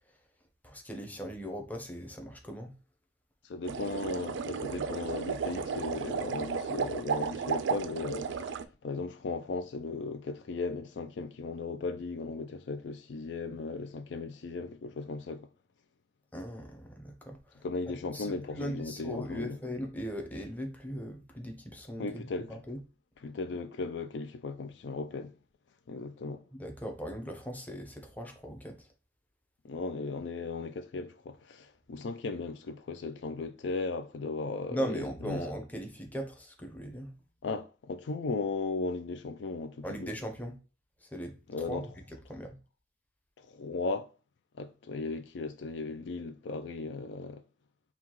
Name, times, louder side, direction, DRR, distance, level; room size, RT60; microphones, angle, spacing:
voice 1, 0.6-2.7 16.3-17.6 18.1-22.8 26.5-28.9 34.7-37.1 39.8-40.6 41.0-41.9 42.3-42.5, equal, 10° left, 0.8 m, -39 dB
voice 2, 3.4-15.5 17.6-19.6 22.0-22.5 23.2-25.3 25.9-26.5 29.6-35.4 37.4-40.1 41.5-41.9 43.4-44.1 44.6-47.4, left 3 dB, 75° left, 0.4 m, -36 dB
sound 1, 3.6-8.6, right 6 dB, 90° right, 0.4 m, -34 dB
5.6 x 2.3 x 3.0 m
head